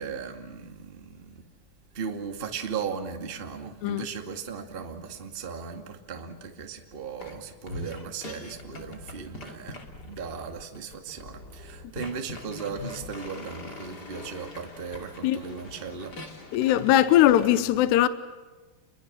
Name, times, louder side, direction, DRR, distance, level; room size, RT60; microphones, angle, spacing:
voice 1, 0.0-1.4 1.9-16.1, right 6 dB, 30° right, 1.1 m, -37 dB
sound 1, 7.2-7.4 7.7-17.5, left 2 dB, 30° left, 2.5 m, -42 dB
voice 2, 16.5-18.1, left 13 dB, 80° left, 3.0 m, -20 dB
29.0 x 22.0 x 7.4 m
omnidirectional pair, 4.9 m